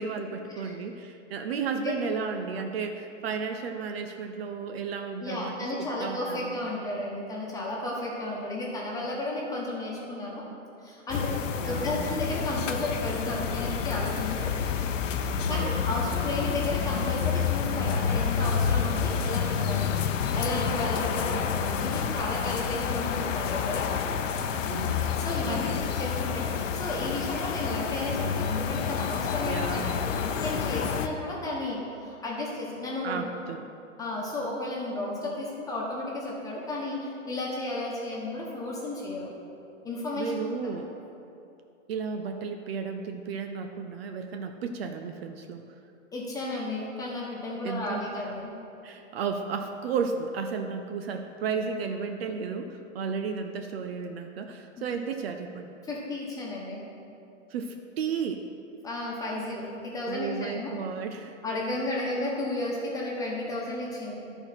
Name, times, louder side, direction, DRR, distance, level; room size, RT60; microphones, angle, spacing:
voice 1, 0.0-6.5 11.6-12.2 15.4-15.8 24.7-25.1 25.5-25.6 29.4-30.3 33.0-33.7 40.2-41.0 41.9-45.6 47.6-48.0 48.8-55.7 57.5-58.4 60.1-61.4, right 5 dB, 55° right, 5 dB, 0.6 m, -33 dB
voice 2, 5.2-10.4 10.8-11.3 11.6-14.5 15.5-19.9 20.3-23.9 25.2-33.2 34.0-39.3 39.8-40.3 46.1-48.5 54.8-54.9 55.8-56.8 58.8-60.7 61.4-64.2, left 2 dB, 10° left, -4 dB, 1.3 m, -33 dB
sound 1, 11.1-31.1, left 7 dB, 75° left, 0.7 m, -29 dB
11.5 x 4.5 x 5.7 m, 2.7 s
hypercardioid pair, 145°, 38 cm